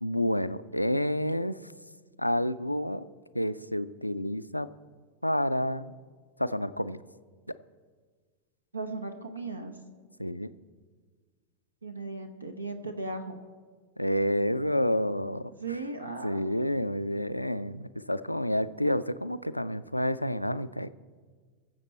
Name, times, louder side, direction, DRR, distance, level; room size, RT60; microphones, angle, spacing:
voice 1, 0.0-1.6 2.2-3.1 3.3-4.7 5.2-5.9 6.4-7.0 10.2-10.5 14.0-15.5 16.2-20.9, equal, 90° left, 13 dB, 0.3 m, -29 dB
voice 2, 8.7-9.8 11.8-13.4 15.6-16.4, right 3 dB, 80° right, 7 dB, 0.8 m, -37 dB
21.5 x 7.2 x 4.3 m, 1.5 s
figure-of-eight pair, 90°, 0 cm